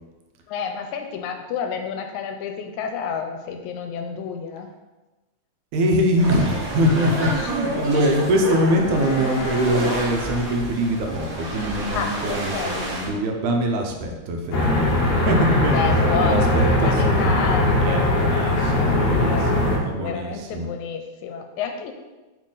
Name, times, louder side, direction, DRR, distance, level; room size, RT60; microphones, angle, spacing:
voice 1, 0.5-4.7 7.1-7.5 11.9-12.8 15.7-19.7 20.0-21.9, left 6 dB, 90° left, 5 dB, 2.0 m, -30 dB
voice 2, 5.7-15.8 16.2-17.3 17.8-19.4 19.8-20.7, equal, 85° right, 3 dB, 2.3 m, -23 dB
sound 1, 6.2-13.1, right 1 dB, 40° right, 1.3 m, -29 dB
Bowed string instrument, 6.8-13.5, left 3 dB, 35° left, 2.0 m, -38 dB
sound 2, 14.5-19.8, left 1 dB, 65° left, 1.8 m, -20 dB
7.4 x 4.2 x 3.9 m, 1.2 s
omnidirectional pair, 3.4 m